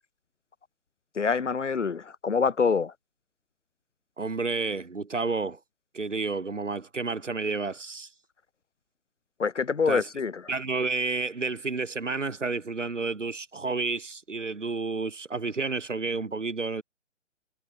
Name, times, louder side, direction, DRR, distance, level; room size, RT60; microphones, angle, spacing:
voice 1, 1.1-2.9 9.4-10.5, left 5 dB, 70° left, 1.5 m, -26 dB
voice 2, 4.2-5.6 5.9-8.1 9.9-10.0 10.5-16.8, right 4 dB, 75° right, 4.2 m, -30 dB
figure-of-eight pair, 135°, 37 cm